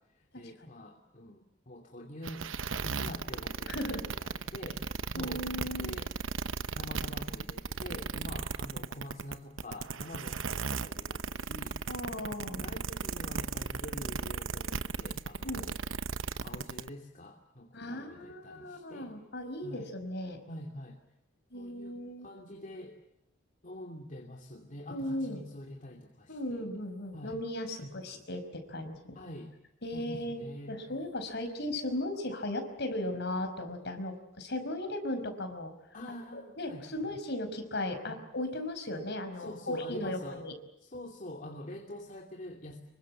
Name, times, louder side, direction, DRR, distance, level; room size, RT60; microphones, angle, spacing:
voice 1, 0.0-5.5 5.8-6.1 6.7-11.8 12.5-15.8 16.4-19.1 19.6-19.9 20.5-21.0 21.5-23.0 23.6-26.6 27.1-27.4 27.8-28.2 29.1-29.6 29.9-30.8 35.9-36.9 38.0-38.2 39.4-40.5 40.8-42.8, left 1 dB, 40° left, 2 dB, 2.7 m, -46 dB
sound 1, 2.2-16.9, right 5 dB, 75° right, 0.9 m, -36 dB
voice 2, 3.7-4.1 5.2-5.9 11.9-12.6 15.4-15.7 17.7-20.4 21.5-22.3 24.9-25.4 26.3-29.2 29.8-35.7 36.3-40.6, left 1 dB, 55° left, 7 dB, 5.2 m, -37 dB
26.5 x 24.0 x 7.4 m, 0.83 s
head